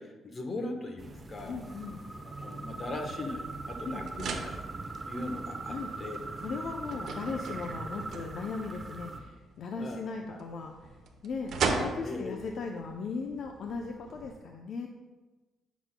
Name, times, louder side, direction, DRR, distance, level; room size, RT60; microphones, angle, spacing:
voice 1, 0.0-1.6 2.4-4.6 5.1-6.2 9.8-10.0 10.3-10.4 12.0-12.6, left 2 dB, 40° left, 4 dB, 1.1 m, -39 dB
sound 1, 1.0-9.2, right 3 dB, 30° right, 0.7 m, -41 dB
sound 2, 1.4-14.3, right 4 dB, 65° right, 0.8 m, -40 dB
voice 2, 1.5-2.0 3.8-4.1 5.7-5.9 6.4-10.9 11.2-14.9, left 4 dB, 65° left, 3 dB, 0.5 m, -37 dB
9.2 x 6.1 x 2.2 m, 1.2 s
cardioid pair, 90°, 0 cm